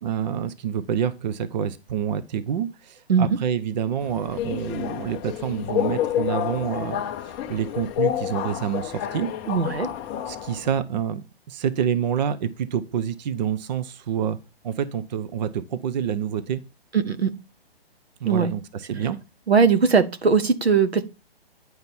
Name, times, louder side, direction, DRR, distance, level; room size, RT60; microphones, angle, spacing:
voice 1, 0.0-9.3 10.3-14.4 14.6-16.6 18.2-19.2, right 8 dB, 45° right, 0.8 m, -27 dB
Subway metro underground, 4.0-10.8, left 11 dB, 15° left, 0.5 m, -29 dB
voice 2, 9.5-9.9 16.9-17.3 18.2-18.5 19.5-21.0, right 5 dB, 85° right, 1.2 m, -19 dB
9.5 x 5.3 x 4.3 m
figure-of-eight pair, 130°, 31 cm